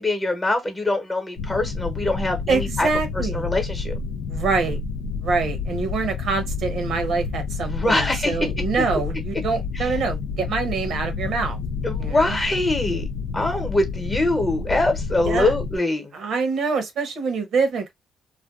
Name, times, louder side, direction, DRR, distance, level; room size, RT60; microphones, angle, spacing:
voice 1, 0.0-2.9 3.1-4.0 7.7-8.4 9.7-9.9 11.8-13.1 13.3-16.2, left 2 dB, 20° left, 0.9 m, -23 dB
sound 1, 1.4-15.8, left 5 dB, 85° left, 0.3 m, -29 dB
voice 2, 2.5-3.4 4.3-4.8 5.2-11.6 12.0-12.4 15.2-15.5 16.1-17.9, right 4 dB, 70° right, 0.8 m, -25 dB
2.5 x 2.2 x 2.3 m
cardioid pair, 90°, 0 cm